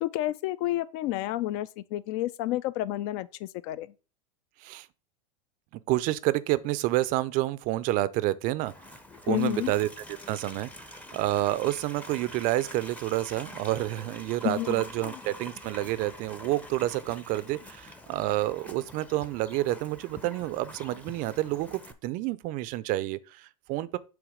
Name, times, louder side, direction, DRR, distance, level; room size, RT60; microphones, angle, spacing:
voice 1, 0.0-3.9 9.3-9.7 14.4-15.1, left 15 dB, 50° left, 0.4 m, -30 dB
voice 2, 5.9-8.7 9.3-9.9 10.3-24.0, right 16 dB, 45° right, 0.4 m, -29 dB
Livestock farm animals working animals, 8.6-21.9, left 1 dB, 5° left, 0.6 m, -46 dB
7.0 x 3.1 x 4.9 m
hypercardioid pair, 115°, 19 cm